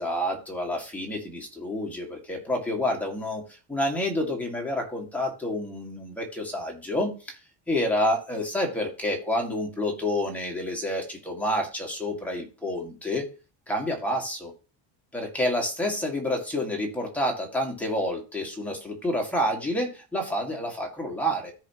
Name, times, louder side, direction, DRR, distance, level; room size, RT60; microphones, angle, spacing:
voice 1, 0.0-3.4 3.7-7.4 7.7-13.2 13.7-14.5 15.1-21.5, left 1 dB, 5° left, 0 dB, 2.0 m, -28 dB
14.5 x 5.0 x 3.0 m, 0.34 s
cardioid pair, 160°, 46 cm